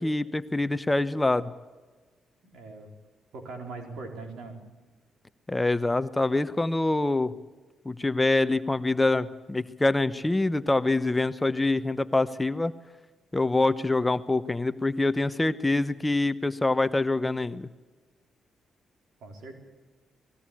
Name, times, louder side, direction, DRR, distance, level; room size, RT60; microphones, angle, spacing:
voice 1, 0.0-1.5 5.5-7.3 7.8-12.7 13.3-17.7, left 2 dB, 15° left, 13 dB, 1.0 m, -25 dB
voice 2, 2.4-2.9 3.3-4.6 19.2-19.5, right 3 dB, 75° right, 4 dB, 4.3 m, -40 dB
20.0 x 17.0 x 8.5 m, 1.3 s
supercardioid pair, 60°, 0 cm